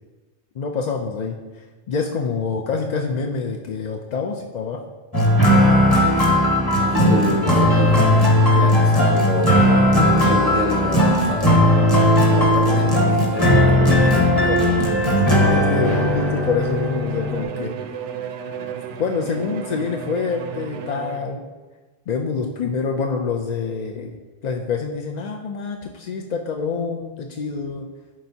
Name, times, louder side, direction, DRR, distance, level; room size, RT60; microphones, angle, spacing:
voice 1, 0.5-4.8 5.9-6.2 14.1-17.7 19.0-21.5 22.1-24.2 24.4-27.9, left 5 dB, 55° left, 2 dB, 0.4 m, -26 dB
sound 1, 5.1-17.4, left 1 dB, 20° left, 1.2 m, -17 dB
voice 2, 6.7-9.6 9.9-11.8 12.2-14.4, left 1 dB, 35° left, 2 dB, 0.8 m, -29 dB
Bowed string instrument, 15.8-21.5, right 7 dB, 80° right, 0.9 m, -32 dB
11.5 x 4.4 x 2.7 m, 1.3 s
omnidirectional pair, 1.2 m